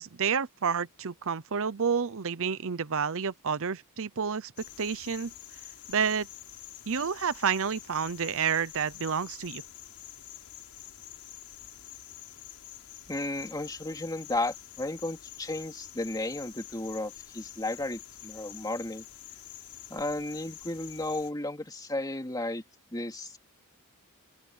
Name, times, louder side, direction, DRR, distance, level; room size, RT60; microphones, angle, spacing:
voice 1, 0.0-4.5 4.8-5.3 5.9-6.3 6.9-9.6, right 6 dB, 65° right, 0.8 m, -29 dB
sound 1, 4.6-21.3, left 12 dB, 85° left, 7.8 m, -47 dB
voice 2, 13.1-19.1 19.9-22.6 22.9-23.4, left 2 dB, 15° left, 2.6 m, -34 dB
open air
head